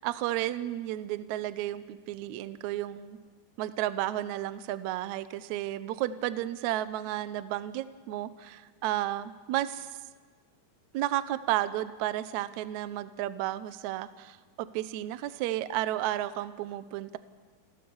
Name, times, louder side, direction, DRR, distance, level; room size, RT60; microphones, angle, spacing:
voice 1, 0.0-3.2 3.6-9.9 10.9-17.2, right 14 dB, 80° right, 13 dB, 1.7 m, -32 dB
29.0 x 13.5 x 7.1 m, 1.4 s
omnidirectional pair, 4.3 m